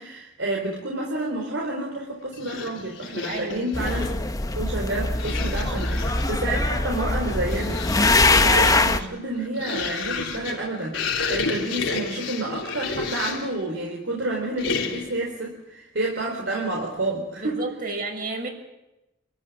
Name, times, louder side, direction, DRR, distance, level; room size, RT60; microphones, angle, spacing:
voice 1, 0.0-4.2 4.5-7.8 8.4-17.6, right 2 dB, 75° right, -1 dB, 4.3 m, -29 dB
sound 1, 2.3-4.3 5.1-6.4 7.1-13.6 14.6-15.3, left 4 dB, 85° left, 3.6 m, -31 dB
voice 2, 3.3-3.7 17.4-18.5, right 3 dB, 50° right, 2 dB, 6.2 m, -31 dB
sound 2, 3.7-9.0, left 2 dB, 20° left, 1.0 m, -22 dB
27.0 x 14.0 x 9.7 m, 0.97 s
head